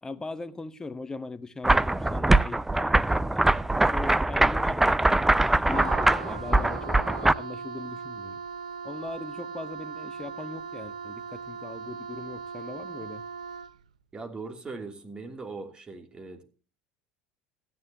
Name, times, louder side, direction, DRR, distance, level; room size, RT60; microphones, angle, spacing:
voice 1, 0.0-3.5 3.8-5.0 5.4-8.4 8.8-13.2, left 3 dB, 15° left, 1.0 m, -40 dB
sound 1, 1.6-7.3, right 2 dB, 10° right, 0.5 m, -22 dB
Wind instrument woodwind instrument, 5.6-13.8, right 6 dB, 85° right, 0.7 m, -39 dB
voice 2, 14.1-16.4, right 3 dB, 25° right, 2.9 m, -40 dB
15.5 x 10.5 x 2.9 m
hypercardioid pair, 70°, 4 cm